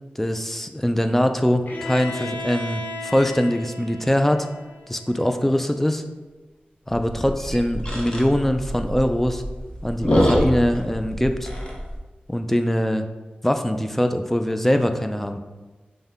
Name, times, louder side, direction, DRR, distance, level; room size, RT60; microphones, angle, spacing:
voice 1, 0.2-4.5 4.9-6.0 6.9-9.4 9.8-11.5 12.3-13.1 13.4-15.4, equal, 10° left, 7 dB, 0.3 m, -22 dB
Bowed string instrument, 1.7-5.5, left 3 dB, 55° left, 0.6 m, -36 dB
sound 1, 6.9-12.0, equal, 30° left, 0.9 m, -25 dB
5.3 x 2.1 x 3.4 m, 1.2 s
wide cardioid pair, 60°, 3 cm